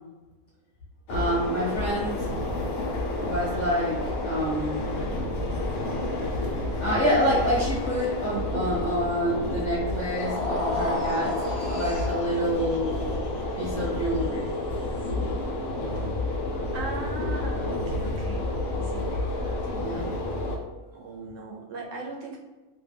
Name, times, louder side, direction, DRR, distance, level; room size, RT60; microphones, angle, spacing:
sound 1, 1.1-20.6, left 2 dB, 85° left, 1.0 m, -30 dB
voice 1, 1.1-2.3 3.2-4.0 4.2-5.0 6.8-11.3 11.7-13.2 13.5-14.5 19.7-20.0, equal, 35° left, -7 dB, 1.1 m, -27 dB
sound 2, 10.0-16.2, left 1 dB, 55° left, 0.3 m, -34 dB
voice 2, 16.7-19.1 19.5-20.2 20.5-20.6 20.9-22.4, right 3 dB, 70° right, -1 dB, 0.9 m, -39 dB
3.1 x 2.2 x 3.3 m, 1.2 s
omnidirectional pair, 1.4 m